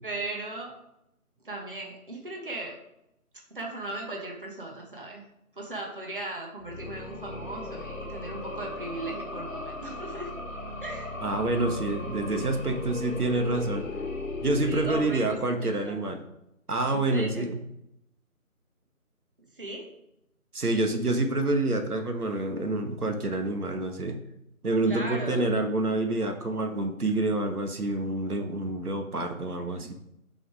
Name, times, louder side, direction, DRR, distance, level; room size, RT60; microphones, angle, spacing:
voice 1, 0.0-0.7 1.4-2.8 3.5-5.2 5.6-10.3 10.8-11.1 14.6-16.0 16.9-17.5 19.5-19.9 24.8-25.5, right 2 dB, 35° right, 0 dB, 1.4 m, -37 dB
sound 1, 6.6-15.7, left 2 dB, 60° left, 1.2 m, -37 dB
voice 2, 11.2-13.9 14.4-16.2 16.7-17.5 20.5-24.2 24.6-29.9, right 2 dB, 85° right, 5 dB, 1.5 m, -27 dB
6.0 x 5.4 x 4.8 m, 0.83 s
figure-of-eight pair, 175°, 44 cm